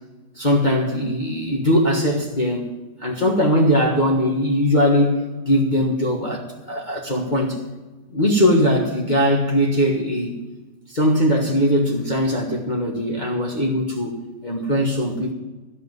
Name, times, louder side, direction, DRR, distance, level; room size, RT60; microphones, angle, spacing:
voice 1, 0.3-2.7 3.0-7.6 8.1-10.4 10.9-14.2 14.4-15.3, equal, 25° left, -2 dB, 1.6 m, -20 dB
14.5 x 5.9 x 9.2 m, 1.2 s
omnidirectional pair, 1.9 m